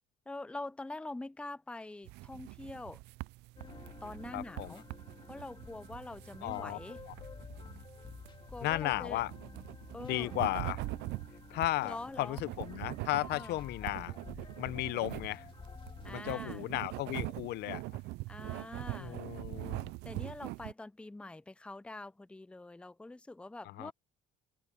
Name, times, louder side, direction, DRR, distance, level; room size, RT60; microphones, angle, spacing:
voice 1, 0.3-3.0 4.0-4.9 5.3-7.0 8.5-9.2 9.9-10.4 11.8-12.4 13.3-13.6 16.0-16.7 18.3-19.2 20.0-23.9, left 2 dB, 5° left, 0.6 m, -45 dB
sound 1, 2.1-20.7, right 22 dB, 85° right, 0.4 m, -43 dB
sound 2, 3.6-16.2, left 5 dB, 30° left, 2.3 m, -51 dB
voice 2, 4.3-4.7 6.4-6.8 8.6-9.3 10.0-10.8 11.5-14.1 14.6-15.5 16.1-18.0 19.0-19.9 23.7-23.9, left 16 dB, 75° left, 0.7 m, -35 dB
cardioid pair, 110°, 17 cm